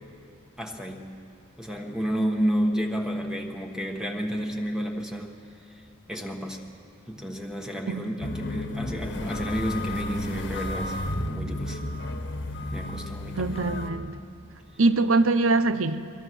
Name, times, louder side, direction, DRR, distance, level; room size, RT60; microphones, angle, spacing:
voice 1, 0.6-1.2 1.6-5.3 6.1-6.6 7.1-11.0 11.3-11.8 12.7-13.7, equal, 5° right, 1.2 m, -30 dB
sound 1, 8.2-13.9, left 1 dB, 60° left, 1.5 m, -32 dB
voice 2, 13.4-14.2 14.8-16.0, right 3 dB, 70° right, 0.8 m, -23 dB
23.0 x 22.0 x 6.2 m
head